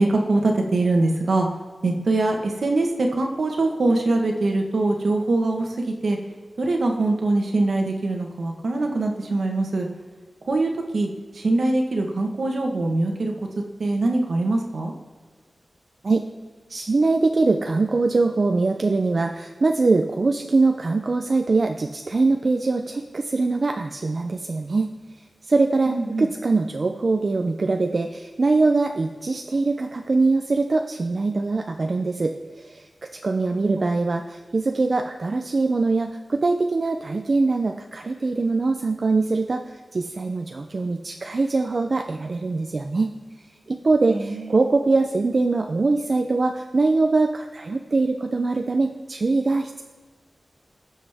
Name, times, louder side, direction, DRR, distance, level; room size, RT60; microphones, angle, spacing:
voice 1, 0.0-1.5 1.8-6.2 6.6-9.9 10.4-11.1 11.3-13.3 13.8-14.9 25.9-26.3 33.4-33.9 44.1-44.5, right 2 dB, 65° right, 2 dB, 1.3 m, -23 dB
voice 2, 16.7-24.9 25.4-32.8 33.2-39.6 39.9-43.2 43.7-49.8, right 3 dB, 45° right, 5 dB, 0.5 m, -22 dB
18.5 x 7.3 x 3.5 m, 1.4 s
wide cardioid pair, 110°, 0 cm